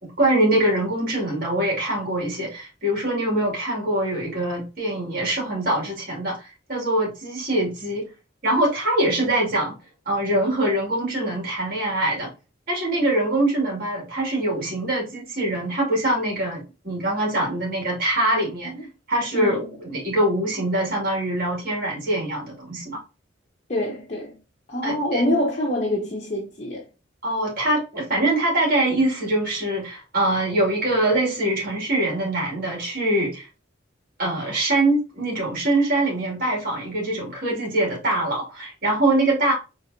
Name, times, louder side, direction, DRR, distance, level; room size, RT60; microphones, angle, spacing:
voice 1, 0.0-8.1 8.4-9.7 10.1-12.3 12.7-18.7 19.1-23.0 24.8-25.3 27.2-33.5 34.2-39.5, right 1 dB, 50° right, 2.3 m, -23 dB
voice 2, 19.3-19.8 23.7-24.4 24.7-26.9, left 1 dB, 35° left, 0.9 m, -26 dB
4.8 x 3.4 x 2.7 m
head